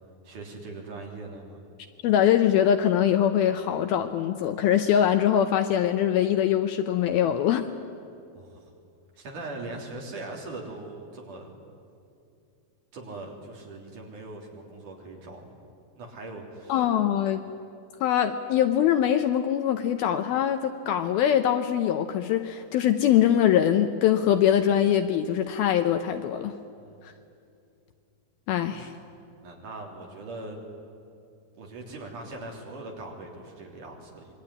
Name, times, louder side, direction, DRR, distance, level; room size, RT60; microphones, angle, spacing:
voice 1, 0.2-1.6 8.3-8.7 9.2-11.5 12.9-15.4 16.0-16.9 26.8-27.1 28.7-28.9 29.4-30.6 31.6-34.3, right 2 dB, 50° right, 0 dB, 4.6 m, -40 dB
voice 2, 2.0-7.6 16.7-17.4 18.0-26.5 28.5-28.9, left 10 dB, 75° left, 8 dB, 2.4 m, -23 dB
26.0 x 22.5 x 9.8 m, 2.6 s
omnidirectional pair, 4.9 m